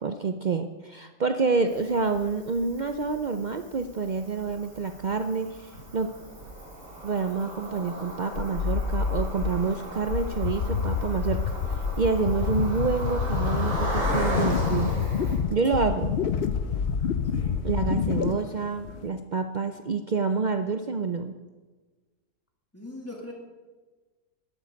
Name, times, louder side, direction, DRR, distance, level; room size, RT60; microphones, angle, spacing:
voice 1, 0.0-6.1 7.0-11.5 12.0-15.1 15.5-16.2 17.6-21.3, right 4 dB, 85° right, 7 dB, 0.4 m, -28 dB
Cricket, 1.7-15.4, right 1 dB, 55° right, 3.9 m, -37 dB
sound 1, 8.3-18.3, left 6 dB, 60° left, 0.6 m, -28 dB
sound 2, 14.1-19.1, left 9 dB, 85° left, 1.2 m, -43 dB
voice 2, 22.7-23.3, left 1 dB, 10° left, -1 dB, 2.3 m, -40 dB
12.0 x 12.0 x 5.2 m, 1.3 s
omnidirectional pair, 1.6 m